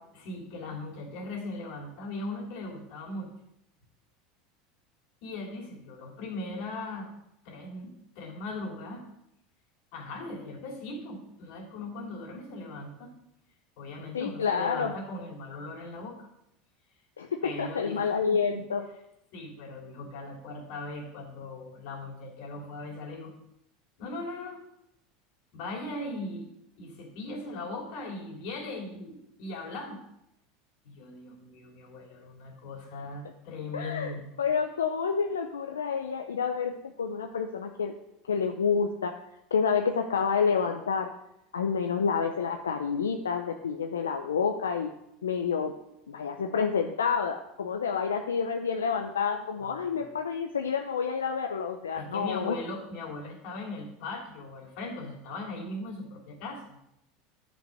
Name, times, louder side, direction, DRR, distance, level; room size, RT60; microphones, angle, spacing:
voice 1, 0.1-3.3 5.2-7.1 7.4-9.0 9.9-13.1 13.8-16.3 17.4-18.6 19.3-23.3 24.0-24.6 25.5-26.5 26.8-30.0 30.8-34.2 49.6-50.1 51.9-56.8, left 2 dB, 60° left, 2 dB, 2.8 m, -39 dB
voice 2, 14.1-14.9 17.2-18.9 33.7-37.9 38.3-39.2 39.5-41.1 41.5-45.0 45.2-45.7 46.1-52.6, left 6 dB, 90° left, 4 dB, 0.6 m, -29 dB
10.0 x 5.5 x 6.2 m, 0.81 s
hypercardioid pair, 85°, 0 cm